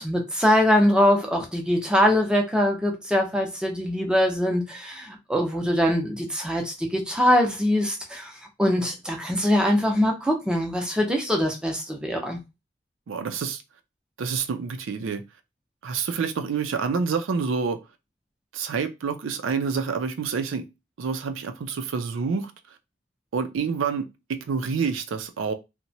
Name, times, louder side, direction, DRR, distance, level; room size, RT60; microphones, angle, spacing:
voice 1, 0.0-8.3 8.6-12.4, left 1 dB, 5° right, 0.5 m, -23 dB
voice 2, 13.1-13.6 14.2-15.2 15.8-17.8 18.5-20.6 21.0-22.5 23.3-24.1 24.5-25.5, right 5 dB, 85° right, 0.4 m, -27 dB
2.8 x 2.1 x 2.7 m
head